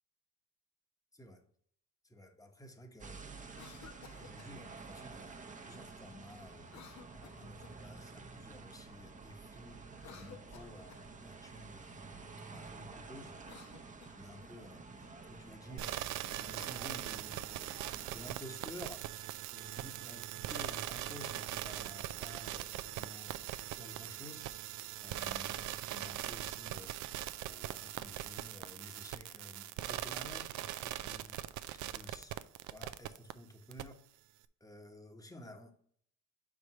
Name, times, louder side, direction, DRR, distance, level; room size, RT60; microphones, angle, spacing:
voice 1, 1.1-1.4 2.0-3.3 4.1-9.8 10.1-13.4 14.1-16.1 16.4-19.1 19.5-23.4 23.8-31.4 31.7-32.4 32.7-34.0 34.6-35.7, left 1 dB, 10° left, 1.0 m, -53 dB
sound 1, 3.0-18.3, right 4 dB, 25° right, 0.7 m, -51 dB
Cough, 3.4-4.6 6.6-7.9 9.8-11.1 13.3-14.5, left 8 dB, 65° left, 0.8 m, -56 dB
sound 2, 15.8-33.3 33.7-33.8, right 13 dB, 75° right, 0.4 m, -41 dB
5.0 x 4.8 x 5.6 m
cardioid pair, 90°, 30 cm